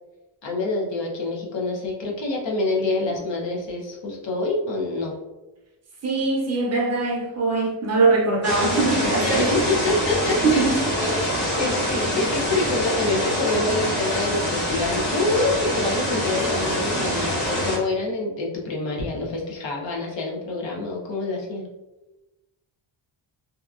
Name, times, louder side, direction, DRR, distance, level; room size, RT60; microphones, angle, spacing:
voice 1, 0.4-5.1 9.2-21.7, left 2 dB, 70° left, -1 dB, 0.8 m, -26 dB
voice 2, 6.0-9.5 10.4-10.9, right 3 dB, 35° right, -1 dB, 0.5 m, -22 dB
sound 1, 8.4-17.8, equal, 25° left, 0.8 m, -25 dB
2.8 x 2.3 x 2.4 m, 1.0 s
wide cardioid pair, 145°, 45 cm